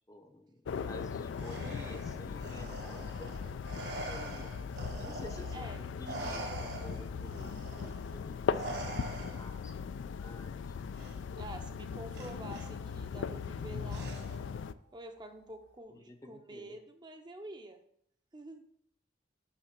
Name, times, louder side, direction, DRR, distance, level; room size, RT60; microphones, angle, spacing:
voice 1, 0.1-4.5 5.0-5.7 6.0-8.9 9.3-10.8 15.9-16.8, left 1 dB, 20° left, 6 dB, 0.6 m, -51 dB
sound 1, 0.7-14.7, left 6 dB, 80° left, 0.3 m, -39 dB
Respiratory sounds, 1.3-5.7 6.0-9.7 10.9-11.1 12.1-12.7 13.9-14.5, right 2 dB, 60° right, 1.6 m, -44 dB
voice 2, 5.5-5.9 11.4-14.1 14.9-17.8 18.3-18.7, right 1 dB, 25° right, 6 dB, 0.6 m, -47 dB
6.5 x 5.6 x 5.8 m, 0.70 s
head